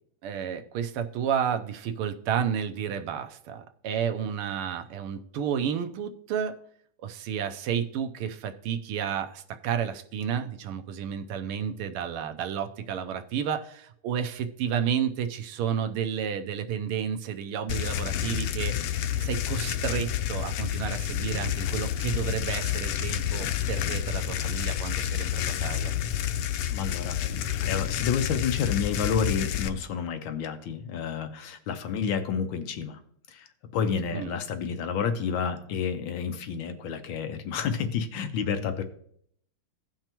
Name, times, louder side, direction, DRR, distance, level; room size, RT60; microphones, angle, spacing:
voice 1, 0.2-6.6 7.0-25.9 34.1-34.3, right 8 dB, 85° right, 8 dB, 1.6 m, -31 dB
sound 1, 17.7-29.7, left 11 dB, 90° left, 1.6 m, -29 dB
voice 2, 26.7-33.0 33.3-33.5 33.7-38.8, left 6 dB, 70° left, 7 dB, 1.4 m, -30 dB
16.5 x 5.6 x 2.9 m, 0.65 s
omnidirectional pair, 2.4 m